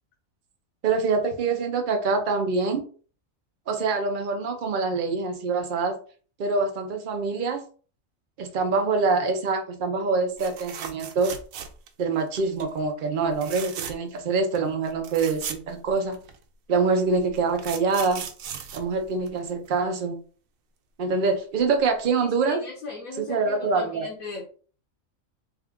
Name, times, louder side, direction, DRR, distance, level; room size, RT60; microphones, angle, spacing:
voice 1, 0.8-2.8 3.7-6.0 6.4-7.6 8.4-11.3 12.0-16.2 16.7-18.3 18.7-20.2 21.0-22.6 23.3-24.1, right 4 dB, 50° right, 4 dB, 0.7 m, -25 dB
sound 1, 10.4-12.0 12.3-12.7 13.3-14.2 14.5-14.6 14.9-16.4 17.1-19.7 21.6-21.7 22.0-22.1, right 8 dB, 80° right, 1.0 m, -37 dB
voice 2, 22.2-24.5, left 3 dB, 85° left, -2 dB, 1.3 m, -38 dB
3.7 x 2.4 x 3.5 m, 0.41 s
omnidirectional pair, 1.4 m